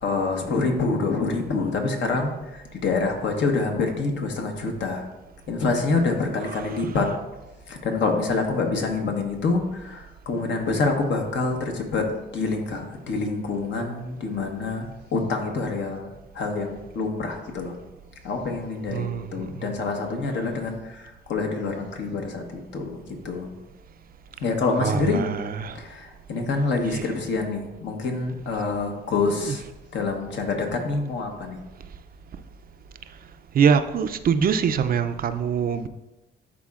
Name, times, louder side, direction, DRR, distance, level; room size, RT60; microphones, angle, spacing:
voice 1, 0.0-5.0 5.5-7.1 7.7-17.8 18.2-23.5 24.4-25.2 25.7-29.6 29.9-31.6, left 3 dB, 70° left, 3 dB, 1.2 m, -26 dB
voice 2, 18.9-19.7 24.8-25.8 26.9-27.0 29.5-29.6 33.5-35.9, right 7 dB, 45° right, 10 dB, 0.4 m, -24 dB
11.0 x 4.2 x 2.4 m, 1.0 s
cardioid pair, 90°, 20 cm